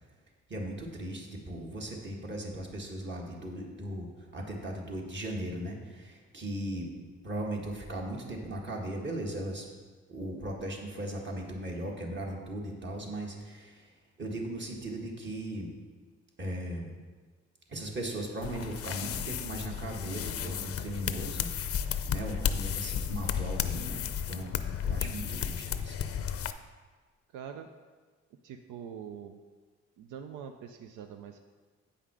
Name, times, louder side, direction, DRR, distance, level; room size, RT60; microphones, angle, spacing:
voice 1, 0.5-6.9 7.2-9.7 10.1-15.7 16.4-16.9 17.7-21.5 22.0-26.2, right 1 dB, 35° right, 0 dB, 1.8 m, -38 dB
sound 1, 18.4-26.5, left 8 dB, 50° left, 0.5 m, -33 dB
voice 2, 27.3-27.7 28.4-29.4 30.0-31.4, right 7 dB, 85° right, 6 dB, 0.6 m, -44 dB
8.6 x 5.7 x 4.8 m, 1.4 s
cardioid pair, 90°, 30 cm